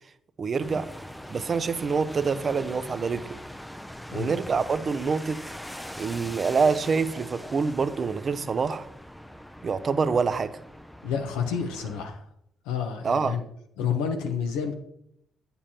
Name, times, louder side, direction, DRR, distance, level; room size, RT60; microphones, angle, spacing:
voice 1, 0.4-0.9 1.3-3.4 4.1-5.5 6.0-8.9 9.6-10.6 13.0-13.4, right 5 dB, 45° right, 0.5 m, -26 dB
sound 1, 0.6-12.1, equal, 5° left, 0.5 m, -42 dB
voice 2, 11.0-12.3 12.6-13.5 13.8-14.7, left 7 dB, 85° left, 0.9 m, -29 dB
8.5 x 7.0 x 2.9 m
supercardioid pair, 55°, 0 cm